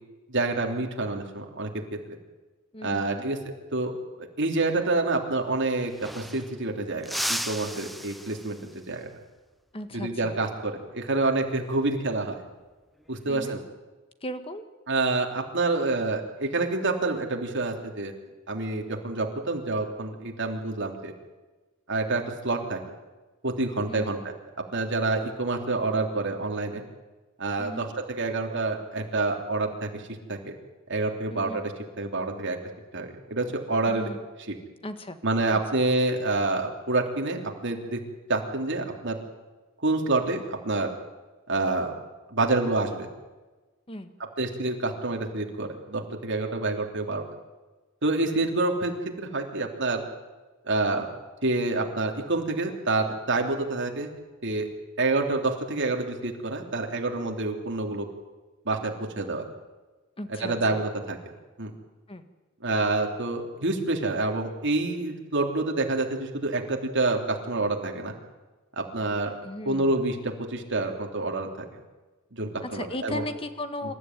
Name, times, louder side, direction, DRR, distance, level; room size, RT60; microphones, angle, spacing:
voice 1, 0.3-1.8 2.8-3.4 3.7-9.1 9.9-12.4 13.1-13.6 14.9-18.2 18.5-21.1 21.9-22.8 23.4-24.3 24.7-26.8 27.4-30.0 30.3-30.5 30.9-32.6 32.9-34.1 34.5-34.6 35.2-38.0 38.3-39.2 39.8-40.9 41.5-41.9 42.3-43.1 44.4-47.2 48.0-50.0 50.7-51.1 51.4-54.1 54.4-54.7 55.0-58.1 58.6-59.4 60.3-61.2 61.6-61.7 62.6-68.1 68.8-69.3 69.6-71.7 72.3-73.2, right 2 dB, 60° right, 2 dB, 3.2 m, -27 dB
voice 2, 2.7-3.3 9.7-10.4 13.3-13.6 14.2-14.6 23.9-24.2 27.6-27.9 31.3-31.6 33.9-34.2 34.8-35.2 35.5-35.8 43.9-44.1 60.2-60.8 62.1-62.3 69.4-69.9 72.6-73.9, left 1 dB, 25° left, 8 dB, 1.7 m, -37 dB
sound 1, 5.4-5.5 5.7-6.6 7.0-8.8 11.3-11.6 13.0-13.5, equal, ahead, 0.9 m, -35 dB
26.5 x 14.0 x 9.4 m, 1.2 s
head